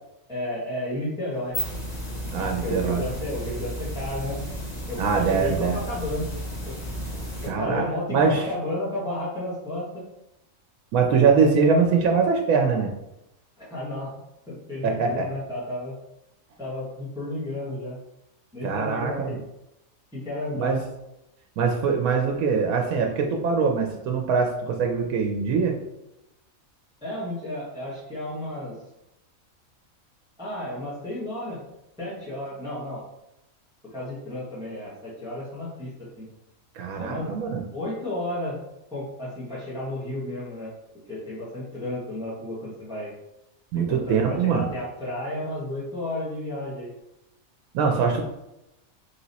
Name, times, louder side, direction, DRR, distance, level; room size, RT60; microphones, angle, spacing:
voice 1, 0.3-1.6 2.3-4.4 4.9-6.3 6.6-6.7 7.4-10.0 13.6-14.2 14.5-15.9 16.6-18.0 18.5-19.4 20.1-20.8 27.0-28.8 30.4-31.6 32.0-33.0 33.8-36.3 36.9-37.3 37.7-38.6 38.9-40.7 41.1-43.1 43.7-46.9, left 1 dB, 5° right, -8 dB, 1.2 m, -32 dB
sound 1, 1.3-7.5, equal, 30° left, 1.2 m, -33 dB
voice 2, 2.3-3.0 5.0-5.8 7.4-7.8 8.1-8.5 10.9-12.9 14.8-15.3 18.6-19.4 20.6-20.8 21.6-25.8 36.8-37.6 43.7-44.7 47.7-48.3, right 5 dB, 90° right, 2 dB, 1.0 m, -23 dB
3.5 x 3.0 x 4.0 m, 0.89 s
omnidirectional pair, 1.5 m